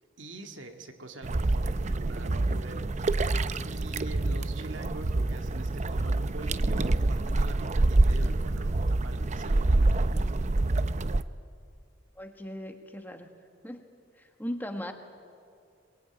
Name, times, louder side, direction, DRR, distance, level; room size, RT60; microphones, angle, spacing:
voice 1, 0.2-2.9 3.7-9.9, right 2 dB, 85° right, 5 dB, 2.0 m, -44 dB
sound 1, 1.2-11.2, right 2 dB, 40° right, 0.6 m, -26 dB
voice 2, 12.1-13.3 13.6-13.9 14.2-14.9, equal, 10° left, 5 dB, 1.5 m, -38 dB
22.0 x 20.0 x 8.9 m, 2.3 s
head